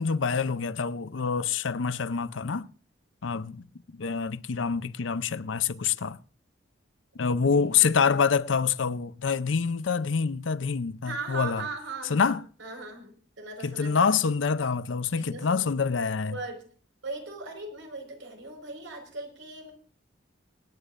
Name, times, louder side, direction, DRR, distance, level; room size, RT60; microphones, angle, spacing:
voice 1, 0.0-2.7 3.2-3.6 4.0-6.2 7.2-11.6 12.1-12.4 13.6-16.4, left 5 dB, 75° left, 0.6 m, -26 dB
voice 2, 7.2-8.1 11.0-14.1 15.2-15.7 16.2-16.7 17.0-19.7, right 3 dB, 75° right, 4.9 m, -39 dB
26.5 x 9.9 x 2.5 m
head